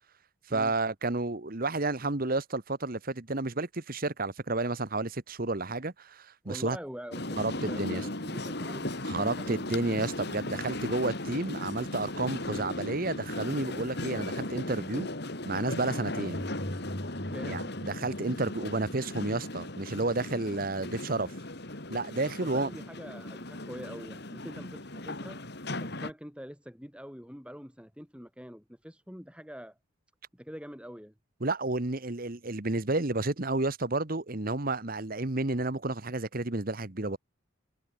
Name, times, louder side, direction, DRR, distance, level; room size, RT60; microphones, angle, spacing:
voice 1, 0.5-6.8 7.4-8.0 9.0-15.1 15.4-16.5 17.5-21.3 21.9-22.7 31.4-37.2, right 2 dB, 45° right, 1.3 m, -31 dB
voice 2, 6.4-9.6 17.3-17.8 22.4-25.4 25.8-29.8 30.3-31.1, equal, 5° right, 6.3 m, -45 dB
sound 1, 7.1-26.1, left 1 dB, 50° left, 3.2 m, -37 dB
sound 2, 16.3-19.0, equal, 15° left, 1.9 m, -42 dB
head